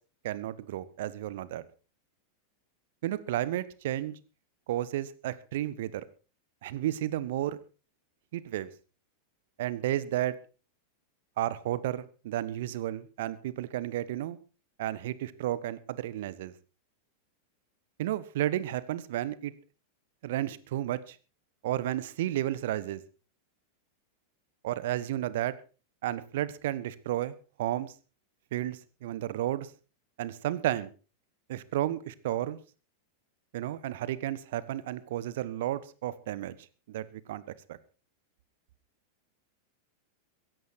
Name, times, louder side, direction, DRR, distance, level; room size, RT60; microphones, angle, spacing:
voice 1, 0.2-1.6 3.0-4.2 4.7-6.0 6.6-7.6 8.3-8.7 9.6-10.4 11.4-14.4 14.8-16.5 18.0-19.5 20.2-21.2 21.6-23.0 24.6-25.5 26.0-27.9 28.5-29.7 30.2-30.9 31.5-32.6 33.5-36.6 36.9-37.4 37.7-37.8, right 13 dB, 55° right, 18 dB, 1.2 m, -32 dB
16.5 x 14.0 x 4.5 m, 0.35 s
figure-of-eight pair, 90°, 0 cm